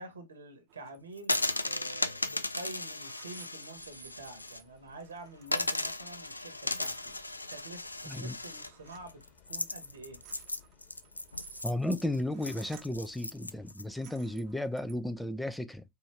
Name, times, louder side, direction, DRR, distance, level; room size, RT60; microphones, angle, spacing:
voice 1, 0.0-7.2 7.5-10.2, right 3 dB, 80° right, 1.2 m, -47 dB
sound 1, 0.7-1.0 1.3-1.9 2.6-6.0 6.3-6.4 6.6-7.8 8.1-9.1 9.8-13.1 13.7-15.0, right 10 dB, 45° right, 0.8 m, -57 dB
sound 2, 1.2-4.6 4.9-5.0 5.5-13.8, left 2 dB, 90° left, 0.3 m, -36 dB
sound 3, 3.7-13.7, left 10 dB, 40° left, 2.8 m, -64 dB
voice 2, 8.1-8.4 11.6-15.8, left 1 dB, 5° left, 0.5 m, -34 dB
4.7 x 2.6 x 3.2 m
figure-of-eight pair, 85°, 0 cm